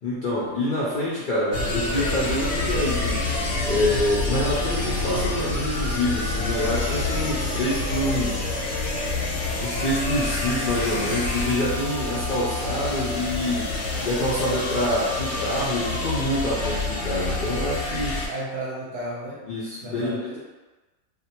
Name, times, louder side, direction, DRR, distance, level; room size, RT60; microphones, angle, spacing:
voice 1, 0.0-3.2 3.6-8.4 9.6-18.2 19.4-20.4, left 1 dB, 70° left, -8 dB, 0.4 m, -26 dB
sound 1, 1.5-18.3, left 2 dB, 90° left, 1.1 m, -27 dB
voice 2, 18.3-19.4 19.8-20.2, right 1 dB, 60° right, -8 dB, 0.8 m, -33 dB
2.5 x 2.0 x 2.8 m, 1.2 s
omnidirectional pair, 1.4 m